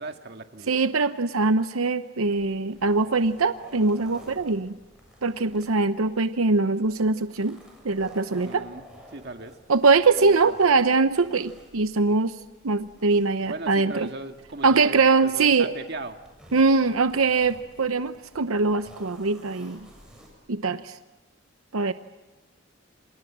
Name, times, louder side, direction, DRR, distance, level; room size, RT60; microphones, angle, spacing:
voice 1, 0.0-0.7 8.4-8.8 9.1-9.5 10.2-10.6 13.5-16.2, right 2 dB, 50° right, 6 dB, 1.9 m, -37 dB
voice 2, 0.7-4.8 5.2-7.6 7.8-8.6 9.7-12.4 12.6-14.1 14.6-15.7 16.5-19.9 20.5-21.0 21.7-21.9, right 4 dB, 90° right, 11 dB, 0.9 m, -22 dB
sound 1, 2.2-20.3, equal, 5° right, 7.3 m, -52 dB
28.0 x 28.0 x 7.5 m, 1.2 s
head